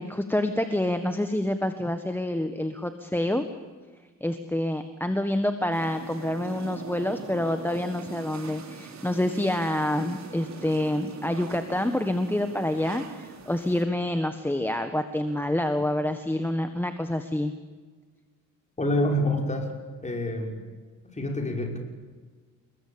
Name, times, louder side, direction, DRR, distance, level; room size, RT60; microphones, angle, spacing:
voice 1, 0.0-3.5 4.2-17.5, left 1 dB, 5° left, 8 dB, 1.6 m, -27 dB
sound 1, 5.7-13.8, right 5 dB, 60° right, 4.8 m, -42 dB
voice 2, 18.8-19.7 20.0-20.6 21.0-21.8, left 1 dB, 20° left, 2 dB, 6.0 m, -27 dB
29.5 x 21.0 x 8.8 m, 1.5 s
cardioid pair, 110°, 31 cm